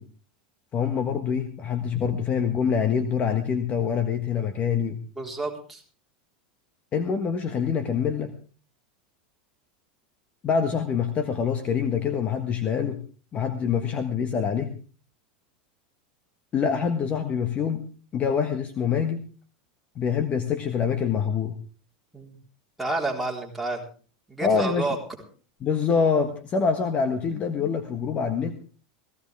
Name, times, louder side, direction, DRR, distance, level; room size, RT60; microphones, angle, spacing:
voice 1, 0.7-5.0 6.9-8.3 10.4-13.0 13.3-14.7 16.5-19.3 20.0-21.6 24.4-24.9 25.6-28.5, left 6 dB, 35° left, 8 dB, 1.4 m, -25 dB
voice 2, 5.2-5.8 22.1-22.4 22.8-23.9 24.3-25.0, right 2 dB, ahead, -1 dB, 3.9 m, -30 dB
17.0 x 16.0 x 3.5 m, 0.38 s
supercardioid pair, 120°, 4 cm